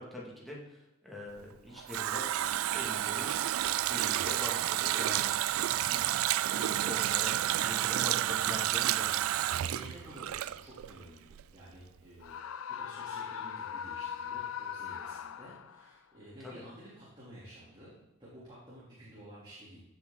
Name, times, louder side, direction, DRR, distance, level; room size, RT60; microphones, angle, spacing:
voice 1, 0.0-2.3 2.7-3.3 3.7-5.3 5.9-6.0 6.4-9.1 16.4-16.5, left 1 dB, ahead, -5 dB, 2.4 m, -43 dB
Water tap faucet, 1.4-11.0 11.3-11.4, right 13 dB, 75° right, 0.3 m, -30 dB
voice 2, 9.6-19.8, right 1 dB, 20° right, -9 dB, 3.5 m, -52 dB
Screaming, 12.2-15.9, left 8 dB, 75° left, 0.4 m, -40 dB
16.0 x 7.4 x 4.1 m, 0.92 s
head